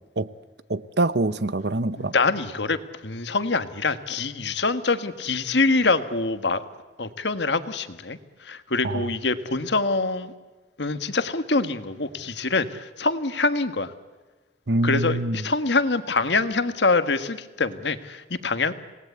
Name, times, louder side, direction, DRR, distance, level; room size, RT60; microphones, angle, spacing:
voice 1, 0.7-2.1 8.8-9.1 14.7-15.4, right 2 dB, 65° right, 15 dB, 0.9 m, -25 dB
voice 2, 1.9-6.6 7.0-10.3 10.8-13.9 14.8-18.7, left 3 dB, 75° left, 10 dB, 1.6 m, -25 dB
27.5 x 19.0 x 8.3 m, 1.3 s
head